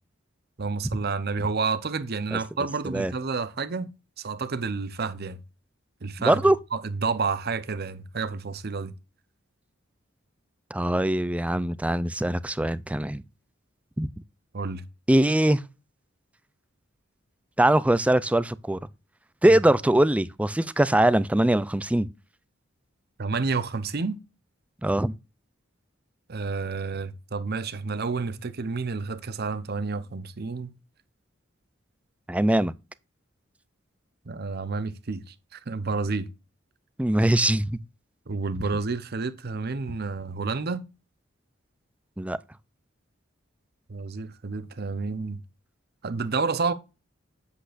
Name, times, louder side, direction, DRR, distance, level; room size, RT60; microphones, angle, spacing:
voice 1, 0.6-3.9 4.2-5.4 6.0-6.4 6.7-8.9 14.5-14.8 19.5-19.6 23.2-24.2 26.3-30.7 34.3-35.2 35.5-36.3 38.3-40.8 43.9-45.4 46.0-46.7, right 4 dB, 50° right, 0.8 m, -30 dB
voice 2, 6.2-6.6 10.7-13.2 14.0-14.1 15.1-15.6 17.6-18.8 19.4-22.1 24.8-25.1 32.3-32.7 37.0-37.8 42.2-42.4, right 1 dB, 5° right, 0.4 m, -22 dB
8.3 x 7.9 x 2.5 m
head